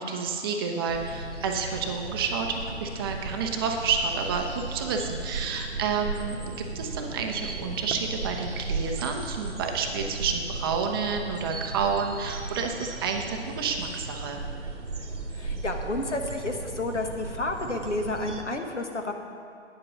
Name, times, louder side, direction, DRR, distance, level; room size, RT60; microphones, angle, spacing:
voice 1, 0.0-14.4, right 5 dB, 20° right, 3 dB, 0.5 m, -30 dB
sound 1, 0.9-18.4, right 3 dB, 85° right, 1.0 m, -36 dB
voice 2, 15.3-19.1, left 2 dB, 85° left, 4 dB, 1.3 m, -31 dB
9.3 x 7.5 x 6.1 m, 2.4 s
figure-of-eight pair, 125°, 35 cm